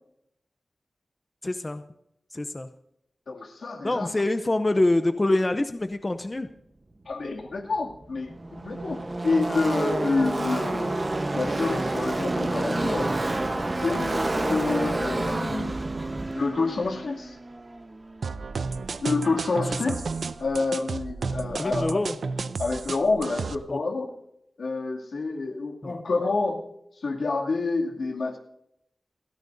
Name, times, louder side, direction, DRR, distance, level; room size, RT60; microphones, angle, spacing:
voice 1, 1.4-1.8 2.3-2.7 3.8-6.5 19.9-20.0 21.6-22.2 23.7-23.8 25.8-26.0, left 2 dB, 25° left, 9 dB, 0.6 m, -25 dB
voice 2, 3.3-4.1 7.1-9.0 9.2-10.9 11.3-13.1 13.6-15.7 16.3-17.4 19.0-20.0 20.4-22.0 22.6-24.1 24.6-26.6 27.0-28.4, left 3 dB, 80° left, 1 dB, 2.3 m, -28 dB
Car passing by / Race car auto racing, 7.5-7.6 7.8-18.4, right 2 dB, 30° right, 1.0 m, -29 dB
sound 1, 18.2-23.6, right 4 dB, 75° right, 0.5 m, -32 dB
29.5 x 10.5 x 2.6 m, 0.77 s
wide cardioid pair, 120°, 0 cm